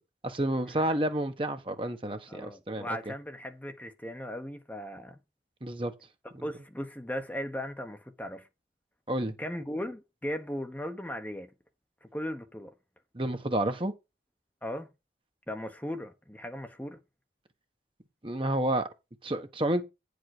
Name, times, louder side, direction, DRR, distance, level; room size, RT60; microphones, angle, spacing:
voice 1, 0.2-2.9 5.6-5.9 9.1-9.3 13.1-13.9 18.2-18.9 19.2-19.8, right 1 dB, 30° right, 1.2 m, -30 dB
voice 2, 2.3-5.2 6.4-8.5 9.4-11.5 12.0-12.7 14.6-14.9 15.5-17.0, equal, 10° left, 1.1 m, -37 dB
9.5 x 5.2 x 6.0 m
head